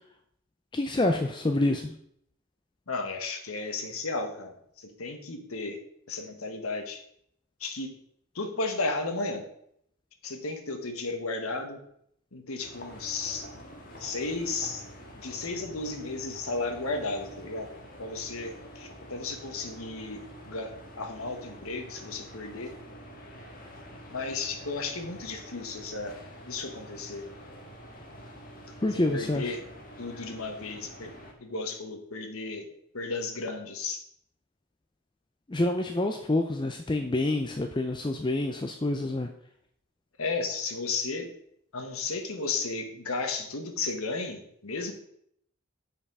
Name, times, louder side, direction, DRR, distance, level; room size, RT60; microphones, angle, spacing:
voice 1, 0.7-1.9 28.8-29.5 35.5-39.3, left 2 dB, 20° left, 5 dB, 0.4 m, -27 dB
voice 2, 2.9-5.8 6.1-7.0 7.6-7.9 8.3-9.5 10.2-11.8 12.3-13.5 14.0-14.9 15.1-17.7 18.0-22.7 24.1-26.2 26.5-27.3 28.9-29.6 30.0-31.1 31.4-32.7 32.9-34.0 40.2-41.3 41.7-44.9, left 3 dB, 85° left, 5 dB, 1.3 m, -34 dB
sound 1, 12.6-31.3, equal, 40° left, 1.6 m, -47 dB
7.0 x 5.7 x 5.4 m, 0.70 s
head